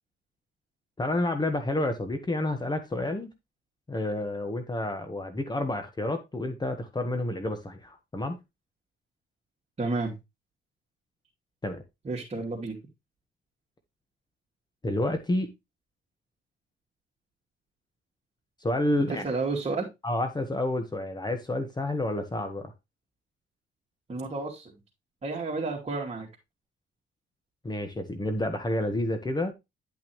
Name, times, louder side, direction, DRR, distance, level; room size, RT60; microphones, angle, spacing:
voice 1, 1.0-3.3 3.9-8.4 11.6-11.8 14.8-15.5 18.6-19.2 20.0-22.7 27.6-29.5, left 1 dB, 20° left, 7 dB, 1.3 m, -29 dB
voice 2, 9.8-10.1 12.0-12.8 19.1-19.9 24.1-24.7 25.2-26.3, right 3 dB, 35° right, -2 dB, 2.7 m, -31 dB
10.5 x 5.9 x 3.1 m, 0.22 s
cardioid pair, 90°, 20 cm